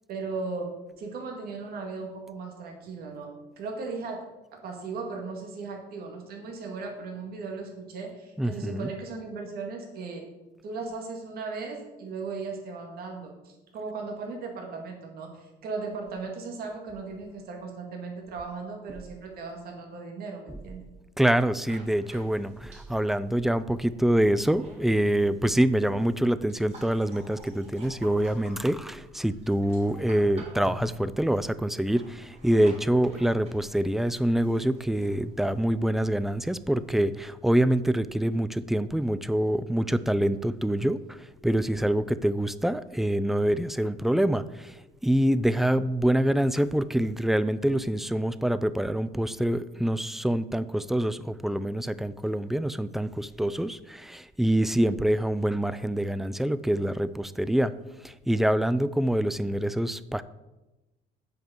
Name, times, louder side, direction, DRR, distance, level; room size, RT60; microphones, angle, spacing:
voice 1, 0.1-4.2 4.6-10.2 10.6-20.8, right 4 dB, 65° right, 1 dB, 2.1 m, -37 dB
voice 2, 8.4-8.9 21.2-57.7 58.0-60.2, right 1 dB, ahead, 15 dB, 0.4 m, -25 dB
sound 1, 21.6-37.3, equal, 40° right, 3.6 m, -49 dB
7.7 x 5.2 x 6.9 m, 1.0 s
cardioid pair, 110°, 17 cm